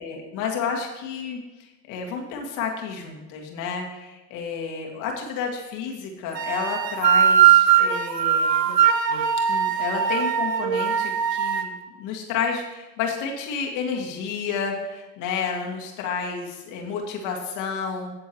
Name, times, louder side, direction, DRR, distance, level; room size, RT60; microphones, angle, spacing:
voice 1, 0.0-8.5 9.5-11.7 12.0-18.1, left 6 dB, 40° left, 1 dB, 2.2 m, -30 dB
sound 1, 6.3-11.6, right 8 dB, 75° right, 1.2 m, -20 dB
16.0 x 6.9 x 3.1 m, 1.1 s
figure-of-eight pair, 95°, 49 cm